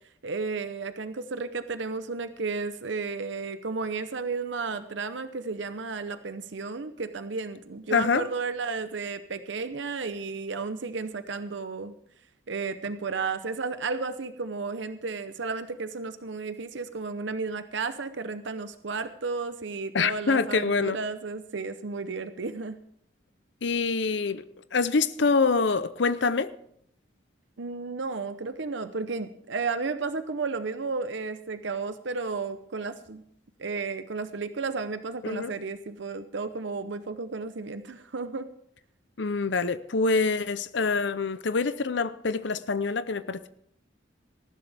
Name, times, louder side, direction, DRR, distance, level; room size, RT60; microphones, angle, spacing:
voice 1, 0.2-11.9 12.5-22.7 27.6-33.2 33.6-38.5, right 4 dB, 70° right, 0.8 m, -33 dB
voice 2, 7.9-8.3 19.9-21.0 23.6-24.4 24.7-26.5 35.2-35.5 39.2-43.5, left 4 dB, 65° left, 0.6 m, -25 dB
19.0 x 14.5 x 3.5 m
head